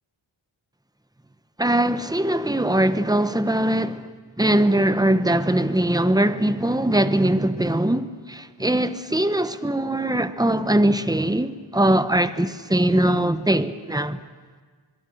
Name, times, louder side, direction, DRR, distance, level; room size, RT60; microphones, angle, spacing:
voice 1, 1.6-4.1 4.4-14.2, right 1 dB, 10° right, 1.0 m, -21 dB
23.5 x 22.5 x 6.4 m
wide cardioid pair, 60°, 50 cm